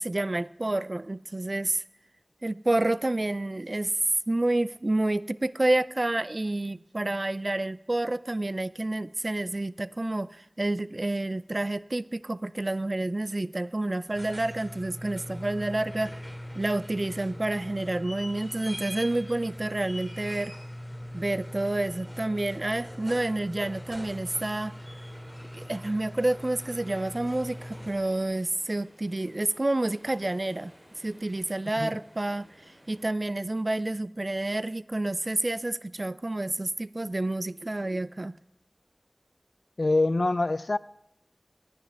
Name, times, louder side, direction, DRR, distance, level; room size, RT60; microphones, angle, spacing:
voice 1, 0.0-1.8 2.4-3.9 4.3-16.2 16.5-20.5 21.1-24.7 25.5-32.5 32.9-38.4, right 2 dB, 50° right, 0.3 m, -29 dB
sound 1, 13.9-28.3 30.1-30.2, equal, 5° left, 2.7 m, -41 dB
sound 2, 24.0-33.1, equal, 20° right, 3.5 m, -57 dB
voice 2, 39.8-40.8, left 2 dB, 75° left, 0.3 m, -24 dB
18.0 x 9.5 x 3.5 m
wide cardioid pair, 45°, 0 cm